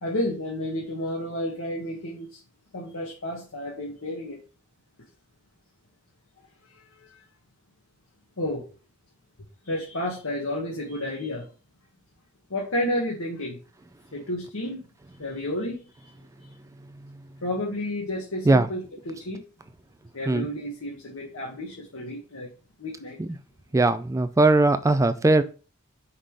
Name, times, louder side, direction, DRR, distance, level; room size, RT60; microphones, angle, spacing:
voice 1, 0.0-2.4 2.7-4.4 6.7-7.2 8.4-8.6 9.6-11.5 12.5-13.6 14.1-14.8 15.2-16.1 17.4-19.4 20.1-22.5 22.8-23.2, left 1 dB, 70° left, 1.6 m, -31 dB
voice 2, 23.7-25.4, right 2 dB, 15° right, 0.4 m, -19 dB
5.6 x 3.7 x 4.8 m
head